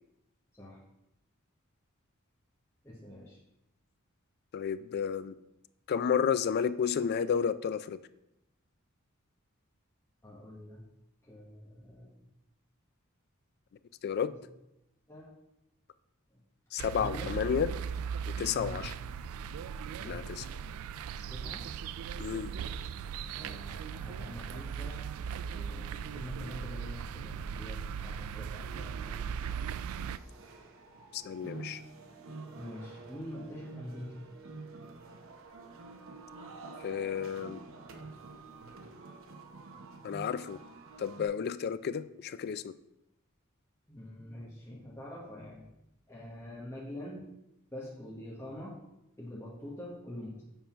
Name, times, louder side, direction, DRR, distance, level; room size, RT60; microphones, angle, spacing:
voice 1, 2.8-3.4 10.2-10.8 11.2-12.2 15.1-15.3 16.3-16.4 16.9-17.4 18.5-18.9 20.0-20.3 21.3-21.7 23.3-25.1 25.5-29.1 32.6-34.2 43.9-45.7 46.1-47.3 47.7-48.8 49.2-50.4, left 1 dB, 15° left, -6 dB, 1.1 m, -45 dB
voice 2, 4.5-5.4 5.9-8.0 14.0-14.3 16.7-17.7 18.3-18.9 20.0-20.5 22.2-22.5 31.1-31.8 36.8-37.6 40.0-40.6 41.0-42.7, left 7 dB, 50° left, 15 dB, 0.3 m, -31 dB
sound 1, 16.8-30.2, right 7 dB, 85° right, 0.3 m, -38 dB
sound 2, 28.6-41.3, right 3 dB, 65° right, 0.8 m, -48 dB
7.1 x 3.7 x 5.6 m, 0.88 s
head